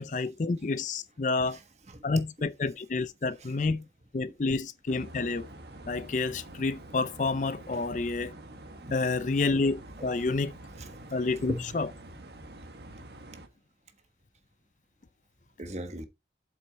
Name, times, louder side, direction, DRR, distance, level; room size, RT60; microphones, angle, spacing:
voice 1, 0.0-1.6 2.0-3.8 4.1-5.5 5.9-8.3 8.9-10.5 11.1-11.9, left 3 dB, 45° left, 0.5 m, -29 dB
voice 2, 1.4-2.2 3.4-3.6 7.7-7.9 8.9-9.4 10.0-10.3 10.7-11.7 15.6-16.1, right 1 dB, 40° right, 1.4 m, -41 dB
sound 1, 4.9-13.5, right 1 dB, 70° right, 1.6 m, -46 dB
7.8 x 6.2 x 4.1 m
head